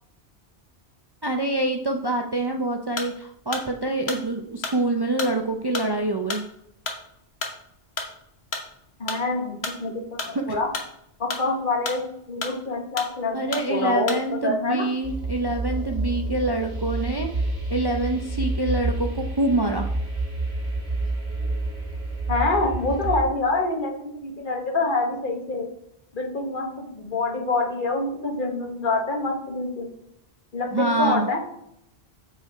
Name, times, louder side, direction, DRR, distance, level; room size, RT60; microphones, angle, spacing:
voice 1, 1.2-6.5 10.3-10.4 13.3-17.3 17.7-19.9 30.7-31.3, right 2 dB, 30° right, 3 dB, 0.5 m, -25 dB
sound 1, 3.0-3.2 3.5-8.7 9.1-10.4 10.6-12.2 12.4-13.2 13.5-13.7 14.1-14.3, left 3 dB, 75° left, 1.4 m, -32 dB
voice 2, 9.0-10.7 11.2-12.0 12.3-14.9 22.3-25.7 26.1-29.9 30.5-31.4, left 2 dB, 50° left, 1 dB, 1.5 m, -26 dB
sound 2, 15.0-23.2, right 2 dB, 70° right, 2.1 m, -29 dB
7.6 x 4.6 x 4.8 m, 0.77 s
omnidirectional pair, 1.1 m